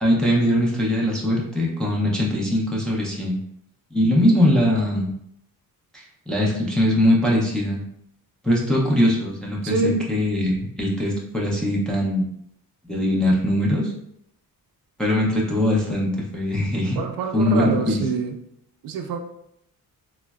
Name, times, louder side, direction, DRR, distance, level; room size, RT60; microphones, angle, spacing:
voice 1, 0.0-3.4 3.9-5.1 6.3-7.8 8.4-12.3 12.8-13.9 15.0-17.0 17.3-18.0, left 1 dB, ahead, -4 dB, 0.4 m, -21 dB
voice 2, 9.6-10.0 17.0-18.4 18.8-19.2, right 5 dB, 70° right, 4 dB, 0.5 m, -25 dB
3.6 x 2.1 x 2.2 m, 0.73 s
cardioid pair, 155°, 36 cm